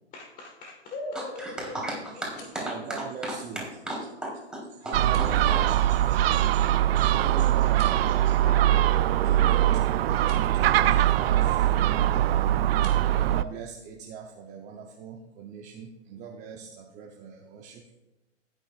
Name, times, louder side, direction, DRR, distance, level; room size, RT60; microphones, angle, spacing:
voice 1, 0.1-1.8 8.4-9.4, left 2 dB, 20° left, -1 dB, 1.6 m, -39 dB
voice 2, 1.1-5.6, right 1 dB, ahead, -3 dB, 3.5 m, -36 dB
sound 1, 2.1-2.7 5.0-5.4 7.6-8.1 10.1-10.5 12.7-13.0, left 5 dB, 45° left, 3.2 m, -51 dB
voice 3, 2.6-3.7 4.8-6.6 7.0-8.4 9.1-12.6 13.3-17.8, right 6 dB, 20° right, 1 dB, 0.7 m, -41 dB
Gull seagull, 4.9-13.4, right 12 dB, 50° right, 0.5 m, -22 dB
15.5 x 9.1 x 2.4 m, 0.97 s
hypercardioid pair, 130°, 38 cm